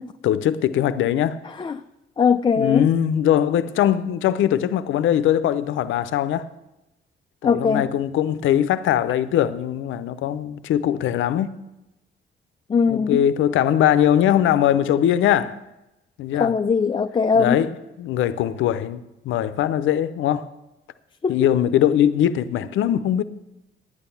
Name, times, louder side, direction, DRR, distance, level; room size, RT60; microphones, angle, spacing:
voice 1, 0.2-1.4 2.6-6.5 7.4-11.6 12.9-15.6 16.2-16.5 17.3-20.5 21.3-23.2, left 10 dB, 80° left, 0.7 m, -21 dB
voice 2, 2.2-2.9 7.4-7.9 12.7-13.2 16.4-17.6 21.2-21.4, left 5 dB, 25° left, 0.4 m, -20 dB
9.8 x 8.9 x 7.1 m
cardioid pair, 90°, 20 cm